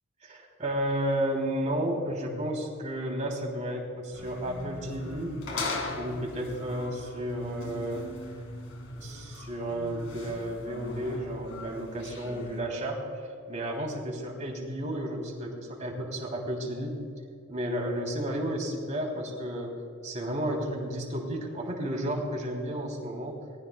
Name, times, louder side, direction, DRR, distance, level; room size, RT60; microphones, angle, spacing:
voice 1, 0.2-5.4 5.9-8.1 9.0-13.2 13.5-17.0 17.5-19.7 20.0-23.4, right 1 dB, 35° right, 0 dB, 3.2 m, -32 dB
sound 1, 4.1-12.6, left 2 dB, 65° left, 2.5 m, -39 dB
26.0 x 20.0 x 2.3 m, 2.5 s
head